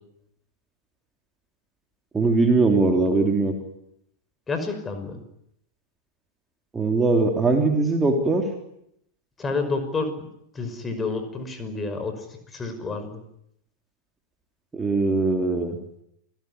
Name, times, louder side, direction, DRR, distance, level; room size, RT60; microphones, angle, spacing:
voice 1, 2.1-3.5 6.7-8.4 14.7-15.8, right 3 dB, 15° right, 3 dB, 3.6 m, -21 dB
voice 2, 4.5-5.2 9.4-10.1 10.6-12.2 12.5-13.2, left 3 dB, 15° left, 8 dB, 5.6 m, -29 dB
29.0 x 17.5 x 9.8 m, 0.77 s
figure-of-eight pair, 90°, 0 cm